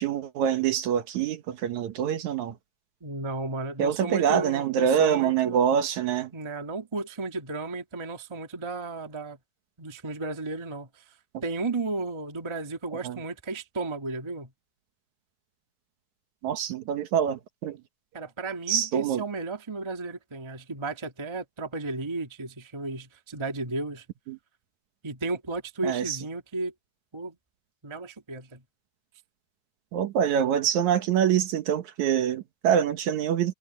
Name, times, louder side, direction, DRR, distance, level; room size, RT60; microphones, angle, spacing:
voice 1, 0.0-2.6 3.8-6.3 13.0-13.2 16.4-17.8 18.7-19.2 24.3-24.4 25.8-26.2 29.9-33.5, right 9 dB, 65° right, 2.4 m, -25 dB
voice 2, 3.0-5.6 6.3-9.4 9.8-11.0 11.4-14.5 18.1-24.0 25.0-26.7 27.1-27.4 27.8-28.6, right 3 dB, 15° right, 0.9 m, -34 dB
omnidirectional pair, 3.8 m